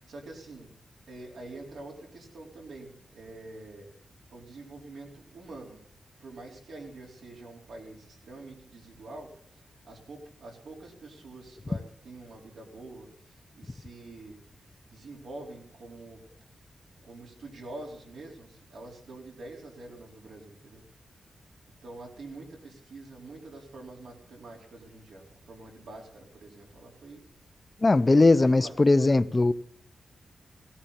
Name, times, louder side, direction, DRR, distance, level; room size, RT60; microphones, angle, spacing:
voice 1, 0.1-0.7 1.1-3.9 4.3-5.8 6.2-9.3 9.8-13.1 13.5-14.3 14.9-16.2 17.0-20.8 21.8-27.2 28.0-28.7, right 2 dB, 90° right, 4.3 m, -46 dB
voice 2, 27.8-29.5, left 2 dB, 25° left, 0.6 m, -20 dB
17.0 x 17.0 x 4.2 m
wide cardioid pair, 145°, 0 cm